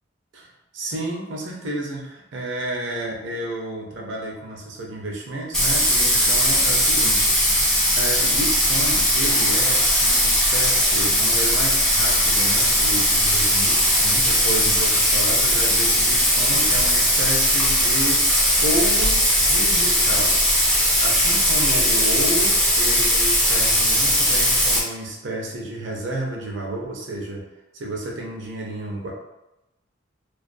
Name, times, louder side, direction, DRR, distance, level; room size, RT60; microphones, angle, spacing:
voice 1, 0.7-20.3 21.0-27.4 27.7-29.1, right 1 dB, 65° right, -1 dB, 0.6 m, -31 dB
Bathtub (filling or washing), 5.5-24.8, equal, 5° left, 0.4 m, -19 dB
2.4 x 2.3 x 2.5 m, 0.93 s
head